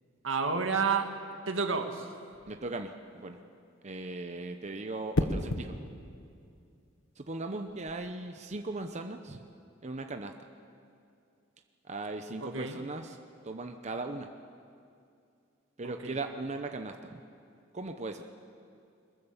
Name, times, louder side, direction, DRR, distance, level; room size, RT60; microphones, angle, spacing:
voice 1, 0.2-1.1 1.5-2.1 12.4-12.8 15.8-16.2, right 5 dB, 80° right, 5 dB, 1.9 m, -30 dB
sound 1, 2.3-2.7 5.1-5.7 7.7-7.9, left 1 dB, 80° left, 1.4 m, -31 dB
voice 2, 2.5-2.9 3.2-3.4 3.8-5.7 7.2-9.4 9.8-10.3 11.9-13.2 13.4-14.3 15.8-17.2 17.7-18.2, right 2 dB, 35° right, 5 dB, 0.9 m, -38 dB
22.5 x 21.0 x 7.3 m, 2.4 s
head